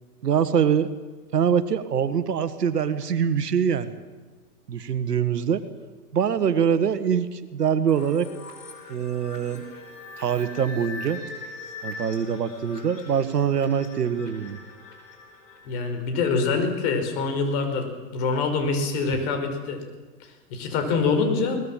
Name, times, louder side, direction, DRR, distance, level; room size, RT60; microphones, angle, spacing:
voice 1, 0.2-0.9 1.3-3.9 4.7-5.6 6.1-8.3 8.9-9.6 10.2-11.2 11.8-14.6, right 7 dB, 80° right, 12 dB, 1.8 m, -24 dB
sound 1, 7.9-16.5, left 3 dB, 85° left, 6.1 m, -42 dB
voice 2, 15.7-19.8 20.5-21.6, left 4 dB, 40° left, 5 dB, 5.3 m, -25 dB
22.5 x 19.5 x 7.5 m, 1.3 s
hypercardioid pair, 130°, 47 cm